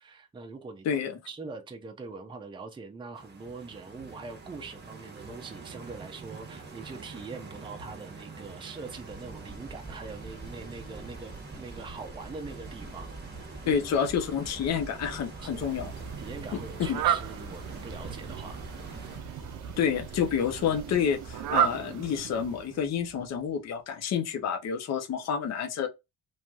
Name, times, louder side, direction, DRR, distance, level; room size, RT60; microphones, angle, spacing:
voice 1, 0.0-0.9 1.3-13.1 13.6-13.8 15.4-15.6 16.2-18.6, right 4 dB, 15° right, 0.6 m, -43 dB
voice 2, 0.8-1.2 13.7-15.9 16.9-17.0 19.8-25.9, left 7 dB, 50° left, 0.7 m, -29 dB
Stream, 3.1-19.2, right 4 dB, 30° right, 0.9 m, -46 dB
sound 1, 8.9-23.7, right 1 dB, 10° left, 1.5 m, -46 dB
Fowl, 15.5-22.8, right 10 dB, 60° right, 0.5 m, -34 dB
3.0 x 2.7 x 2.3 m
cardioid pair, 105°, 35 cm